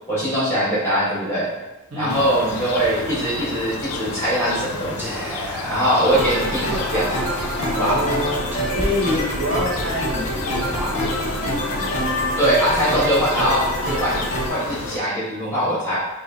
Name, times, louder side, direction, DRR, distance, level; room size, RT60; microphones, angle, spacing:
voice 1, 0.1-1.5 1.9-5.1 5.7-7.1 7.7-8.0 12.4-13.6 13.9-14.2 14.5-16.0, equal, 10° left, -7 dB, 1.4 m, -21 dB
sound 1, 2.1-15.0, left 3 dB, 70° left, 0.5 m, -31 dB
Whispering, 5.0-11.4, equal, 10° right, 0.5 m, -33 dB
sound 2, 6.1-14.5, equal, 30° left, 1.1 m, -26 dB
voice 2, 7.7-8.5 8.7-12.1, left 1 dB, 75° right, -5 dB, 1.3 m, -27 dB
5.9 x 2.4 x 2.8 m, 1.1 s
head